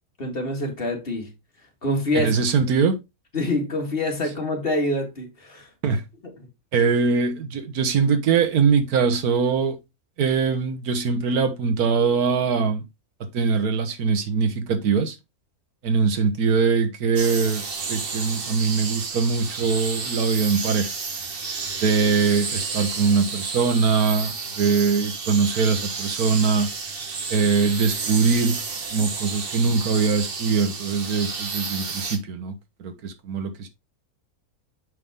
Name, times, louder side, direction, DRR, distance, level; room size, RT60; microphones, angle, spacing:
voice 1, 0.2-1.3 1.8-2.3 3.3-5.7 6.4-6.5, left 1 dB, 40° left, 1.9 m, -26 dB
voice 2, 2.1-3.0 5.8-6.0 6.7-9.8 10.2-12.8 13.3-15.2 15.8-17.6 17.9-20.9 21.8-26.7 27.3-28.6 28.9-32.5 32.8-33.7, right 5 dB, 80° right, 1.5 m, -22 dB
sound 1, 17.2-32.2, right 4 dB, 40° right, 1.1 m, -31 dB
6.5 x 5.5 x 3.5 m
omnidirectional pair, 1.6 m